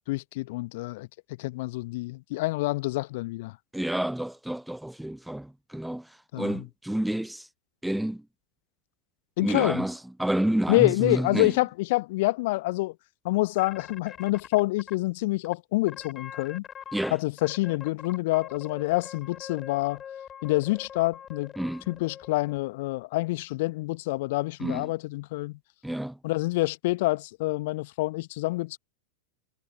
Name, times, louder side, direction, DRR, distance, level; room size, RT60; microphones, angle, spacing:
voice 1, 0.1-1.1 1.4-3.6 6.3-6.6 9.4-9.8 10.7-12.9 13.2-16.6 17.1-20.0 20.4-21.5 21.9-25.6 26.2-28.8, left 21 dB, 50° left, 1.2 m, -27 dB
voice 2, 3.7-7.5 7.8-8.2 9.4-11.5 16.9-17.2 21.6-21.8 24.6-24.9 25.8-26.2, right 1 dB, ahead, 0.4 m, -29 dB
sound 1, 13.6-14.9 15.4-15.5 15.9-17.1 17.4-22.6, left 8 dB, 25° left, 3.4 m, -43 dB
figure-of-eight pair, 90°, 0 cm